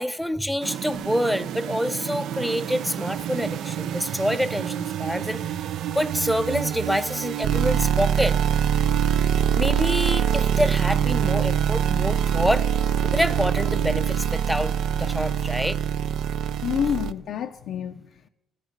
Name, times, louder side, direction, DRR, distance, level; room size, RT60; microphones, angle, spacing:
voice 1, 0.0-5.5 5.9-8.4 9.5-12.7 13.0-15.8, equal, ahead, 0.4 m, -26 dB
sound 1, 0.6-17.1, right 9 dB, 80° right, 0.3 m, -25 dB
voice 2, 16.6-18.3, left 9 dB, 75° left, 0.4 m, -28 dB
13.5 x 8.1 x 5.2 m
cardioid pair, 90°, 0 cm